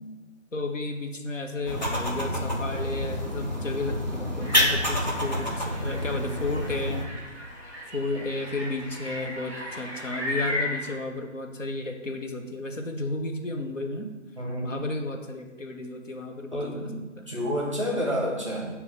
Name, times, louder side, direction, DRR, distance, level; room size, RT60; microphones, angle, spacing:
voice 1, 0.5-7.1 7.9-14.1 14.6-16.9 17.2-17.3, left 2 dB, 70° left, 3 dB, 1.0 m, -33 dB
sound 1, 1.7-7.1, left 1 dB, 35° left, 0.7 m, -28 dB
sound 2, 4.4-10.9, left 1 dB, 5° right, 1.2 m, -36 dB
voice 2, 14.4-14.9 16.5-17.0 17.3-18.7, equal, 25° right, -3 dB, 0.8 m, -29 dB
6.2 x 2.9 x 5.4 m, 1.2 s
figure-of-eight pair, 160°, 39 cm